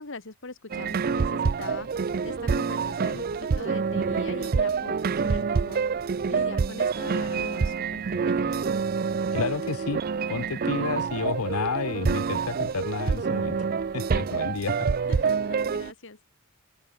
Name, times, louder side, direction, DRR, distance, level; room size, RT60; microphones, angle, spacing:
voice 1, 0.0-5.8 6.3-8.5 15.1-16.2, left 3 dB, 55° left, 1.7 m, -41 dB
sound 1, 0.7-15.9, right 5 dB, 40° right, 0.4 m, -27 dB
voice 2, 9.3-13.7 13.9-14.8, left 5 dB, 80° left, 0.7 m, -31 dB
head